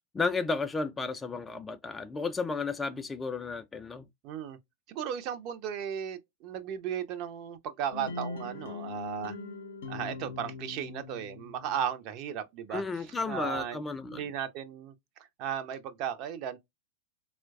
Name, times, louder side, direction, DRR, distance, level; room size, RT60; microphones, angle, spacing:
voice 1, 0.1-4.1 12.7-14.2, left 4 dB, 15° left, 0.3 m, -33 dB
voice 2, 4.2-4.6 4.9-9.4 9.9-12.8 13.3-13.8 14.1-14.9 15.4-16.6, right 9 dB, 40° right, 0.5 m, -35 dB
sound 1, 7.9-11.9, left 4 dB, 60° left, 0.6 m, -41 dB
4.3 x 2.1 x 2.3 m
figure-of-eight pair, 90°, 0 cm